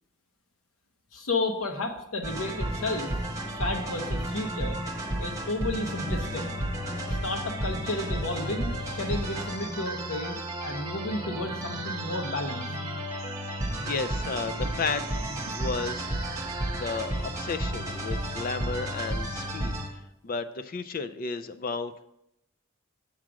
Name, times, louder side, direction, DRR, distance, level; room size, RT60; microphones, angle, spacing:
voice 1, 1.1-3.1 3.5-4.8 5.2-6.5 7.1-12.7, left 2 dB, 90° left, 4 dB, 1.0 m, -32 dB
sound 1, 2.2-19.9, right 1 dB, 15° right, 1.2 m, -32 dB
sound 2, 8.2-17.0, right 6 dB, 80° right, 0.5 m, -44 dB
voice 2, 13.8-15.1 15.5-16.1 16.7-20.0 20.2-22.0, left 4 dB, 45° left, 11 dB, 0.4 m, -33 dB
7.5 x 4.9 x 6.2 m, 0.81 s
head